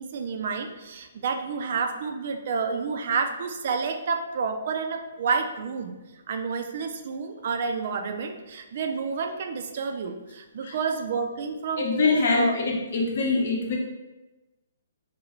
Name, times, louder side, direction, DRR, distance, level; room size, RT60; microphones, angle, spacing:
voice 1, 0.0-5.9 6.3-12.6, right 5 dB, 50° right, 5 dB, 0.3 m, -29 dB
voice 2, 11.8-12.6 12.9-13.8, left 4 dB, 55° left, -1 dB, 0.7 m, -24 dB
2.7 x 2.3 x 2.9 m, 1.1 s
figure-of-eight pair, 130°, 0 cm